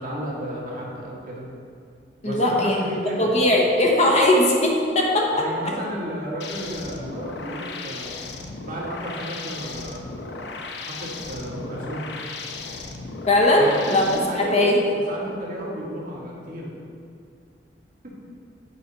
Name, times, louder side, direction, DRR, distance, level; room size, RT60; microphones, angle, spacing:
voice 1, 0.0-1.5 2.2-3.4 5.4-8.2 8.6-10.5 11.0-12.0 13.6-16.7 18.0-18.1, equal, 50° right, -5 dB, 1.6 m, -33 dB
voice 2, 2.2-2.8 3.2-5.3 13.3-14.1 14.3-14.8, left 1 dB, 40° left, -1 dB, 1.0 m, -19 dB
sound 1, 6.4-14.2, left 3 dB, 70° left, 0.6 m, -36 dB
8.5 x 5.0 x 4.1 m, 2.4 s
head